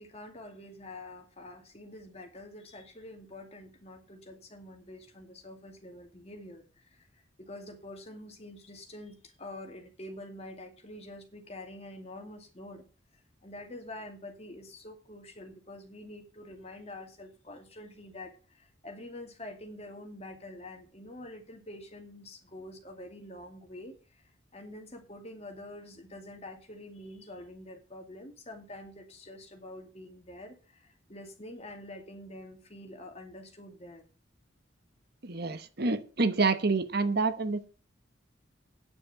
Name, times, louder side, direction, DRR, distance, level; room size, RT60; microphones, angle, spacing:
voice 1, 0.0-12.9 13.4-24.2 24.5-34.0, left 1 dB, 35° left, 5 dB, 2.3 m, -46 dB
voice 2, 35.2-37.7, right 3 dB, 55° right, 11 dB, 1.1 m, -28 dB
9.5 x 6.8 x 8.2 m, 0.36 s
head